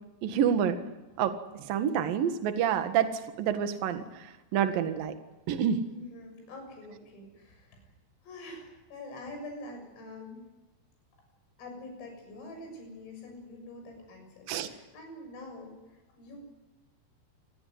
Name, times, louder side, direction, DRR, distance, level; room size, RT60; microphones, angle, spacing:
voice 1, 0.2-0.8 1.2-4.0 4.5-5.1 5.5-5.8 14.5-14.7, right 8 dB, 55° right, 8 dB, 2.9 m, -28 dB
voice 2, 5.9-7.8 8.2-10.4 11.6-16.4, left 2 dB, 85° left, 3 dB, 9.4 m, -45 dB
29.0 x 19.0 x 9.5 m, 1.0 s
omnidirectional pair, 5.7 m